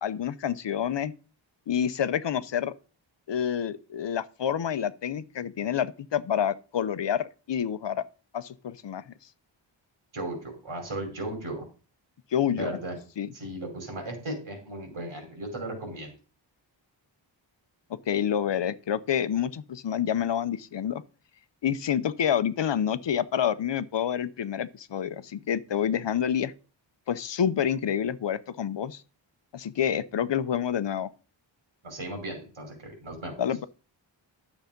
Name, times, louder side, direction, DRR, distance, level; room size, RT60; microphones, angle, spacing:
voice 1, 0.0-1.1 1.7-2.7 3.3-8.0 8.3-9.0 12.3-12.8 13.2-13.3 18.1-21.0 21.6-26.5 27.1-29.0 29.5-31.1 33.4-33.7, left 9 dB, 65° left, 0.8 m, -28 dB
voice 2, 10.1-11.6 12.6-13.0 13.3-16.1 31.8-33.4, right 1 dB, 80° right, 4.9 m, -36 dB
12.0 x 7.1 x 5.2 m
wide cardioid pair, 155°, 47 cm